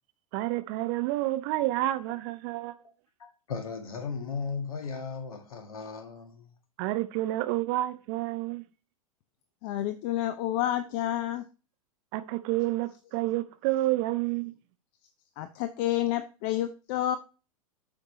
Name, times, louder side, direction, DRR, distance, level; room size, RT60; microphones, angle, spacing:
voice 1, 0.3-2.7 6.8-8.6 12.1-14.5, right 16 dB, 40° right, 0.6 m, -29 dB
voice 2, 3.2-6.5, left 5 dB, 70° left, 1.8 m, -36 dB
voice 3, 9.6-11.4 15.4-17.2, left 12 dB, 40° left, 0.5 m, -29 dB
7.9 x 5.3 x 2.9 m
figure-of-eight pair, 95°, 19 cm